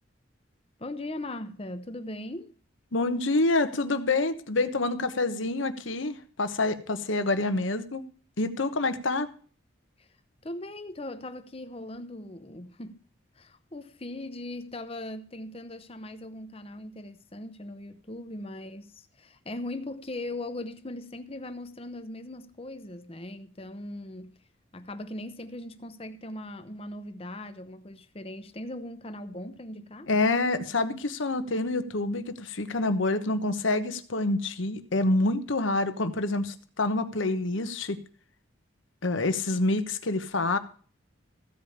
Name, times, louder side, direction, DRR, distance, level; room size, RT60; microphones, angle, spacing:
voice 1, 0.8-2.5 10.0-10.1 10.4-13.0 13.4-24.4 24.7-30.1, left 1 dB, 30° left, 0.8 m, -39 dB
voice 2, 2.9-8.0 8.4-9.3 30.1-38.0 39.0-40.6, left 2 dB, 70° left, 1.1 m, -27 dB
15.0 x 5.1 x 8.6 m
head